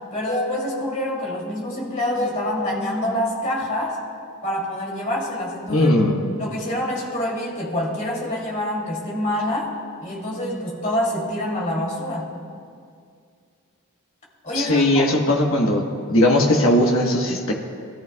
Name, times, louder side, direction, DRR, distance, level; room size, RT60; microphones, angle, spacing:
voice 1, 0.1-4.0 4.4-5.9 6.4-9.7 10.0-12.3 14.4-15.0, left 1 dB, 35° left, -3 dB, 2.8 m, -26 dB
voice 2, 5.7-6.3 14.5-15.8 16.1-17.5, left 1 dB, 60° left, 0 dB, 1.3 m, -18 dB
21.5 x 13.5 x 2.3 m, 2.2 s
head